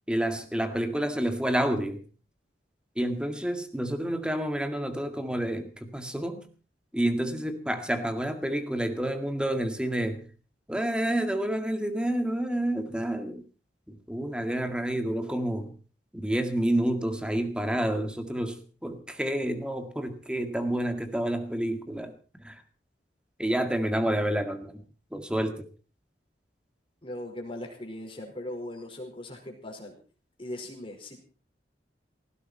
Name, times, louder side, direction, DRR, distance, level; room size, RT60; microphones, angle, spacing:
voice 1, 0.1-2.0 3.0-6.5 6.9-10.3 10.7-13.4 13.9-15.8 16.1-22.6 23.4-24.8 25.1-25.7, right 1 dB, 5° right, 2.0 m, -29 dB
voice 2, 27.0-30.0 30.4-31.2, left 1 dB, 30° left, 5.0 m, -39 dB
18.5 x 16.0 x 4.4 m
head